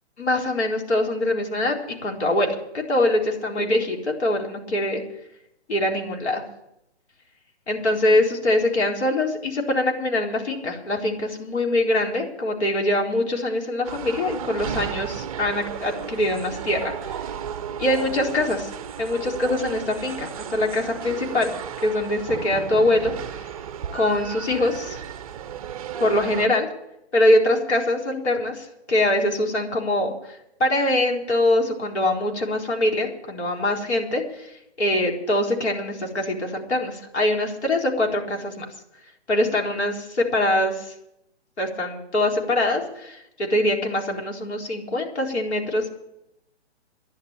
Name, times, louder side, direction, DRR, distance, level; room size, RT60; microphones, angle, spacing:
voice 1, 0.2-1.7 2.0-5.0 5.7-6.4 7.7-17.3 17.8-18.7 19.0-21.5 21.8-23.4 23.9-25.0 26.0-26.7 27.1-38.7 39.3-40.9 41.6-45.9, left 1 dB, 75° left, 0 dB, 4.2 m, -23 dB
sound 1, 13.8-26.5, right 9 dB, 35° right, 0.6 m, -34 dB
12.0 x 11.0 x 8.7 m, 0.82 s
hypercardioid pair, 140°, 34 cm